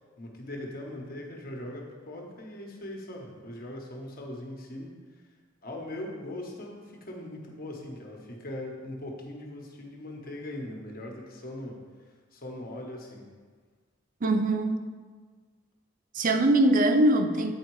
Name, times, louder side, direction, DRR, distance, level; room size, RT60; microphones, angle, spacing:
voice 1, 0.2-5.2 5.6-11.8 12.3-13.3, left 1 dB, 50° left, 0 dB, 1.2 m, -40 dB
voice 2, 14.2-14.8 16.1-17.5, right 1 dB, 45° right, 6 dB, 0.5 m, -22 dB
8.5 x 4.3 x 4.7 m, 1.5 s
head